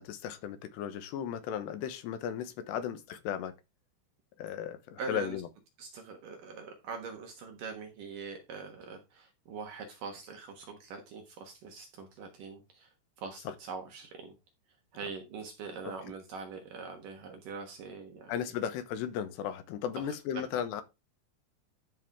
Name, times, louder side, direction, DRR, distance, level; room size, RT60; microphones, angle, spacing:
voice 1, 0.0-3.5 4.4-5.5 18.3-20.8, left 9 dB, 80° left, 3.0 m, -36 dB
voice 2, 5.0-5.4 5.8-12.9 13.2-14.3 14.9-18.3 20.3-20.6, right 5 dB, 65° right, 2.3 m, -43 dB
12.5 x 5.5 x 3.5 m
omnidirectional pair, 5.1 m